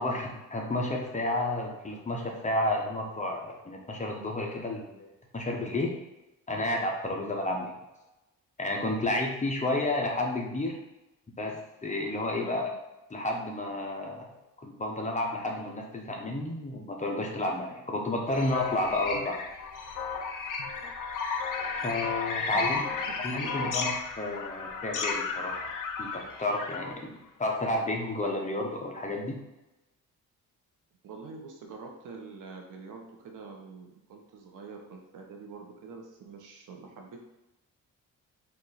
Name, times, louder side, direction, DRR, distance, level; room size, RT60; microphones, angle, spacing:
voice 1, 0.0-5.1 5.3-5.9 6.5-7.7 8.6-10.7 11.4-11.5 11.8-12.7 13.1-14.2 14.6-19.4 21.7-22.8 23.2-25.7 26.0-29.4, left 2 dB, 20° left, 0 dB, 0.8 m, -31 dB
sound 1, 18.3-27.0, left 5 dB, 70° left, 0.7 m, -34 dB
voice 2, 22.5-23.7 31.0-37.2, right 4 dB, 70° right, 2 dB, 0.9 m, -46 dB
4.5 x 2.6 x 3.9 m, 0.99 s
cardioid pair, 100°, 33 cm